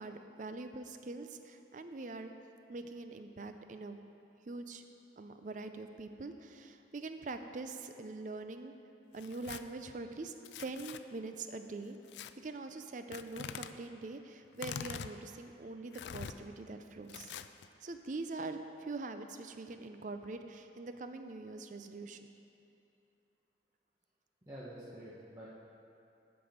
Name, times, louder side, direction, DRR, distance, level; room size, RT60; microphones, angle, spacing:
voice 1, 0.0-2.3 2.7-4.0 4.5-4.8 5.2-8.7 9.1-10.3 10.6-12.0 12.4-17.3 17.8-22.3, right 3 dB, 45° right, 8 dB, 0.5 m, -43 dB
Tearing, 9.1-9.6 10.4-11.0 12.1-12.3 13.1-13.7 14.5-15.1 15.9-16.3 17.1-17.7, left 8 dB, 70° left, 0.3 m, -44 dB
voice 2, 24.5-25.5, right 1 dB, 20° right, -8 dB, 1.0 m, -48 dB
11.0 x 6.1 x 5.1 m, 2.7 s
head